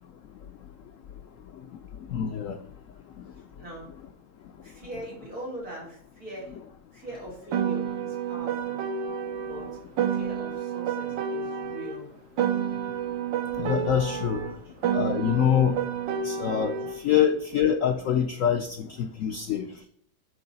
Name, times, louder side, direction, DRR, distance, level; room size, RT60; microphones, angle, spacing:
voice 1, 2.1-2.6 13.6-14.4 14.9-15.8 16.2-16.7 17.0-19.7, left 9 dB, 85° left, 7 dB, 0.7 m, -25 dB
voice 2, 3.6-3.9 4.6-6.6 6.9-8.8 9.4-9.7 10.1-12.1 14.4-14.7, right 1 dB, 50° right, -5 dB, 3.9 m, -41 dB
Piano, 7.5-12.0 12.4-17.0, right 8 dB, 80° right, 1.5 m, -29 dB
10.0 x 4.6 x 3.9 m, 0.64 s
omnidirectional pair, 2.0 m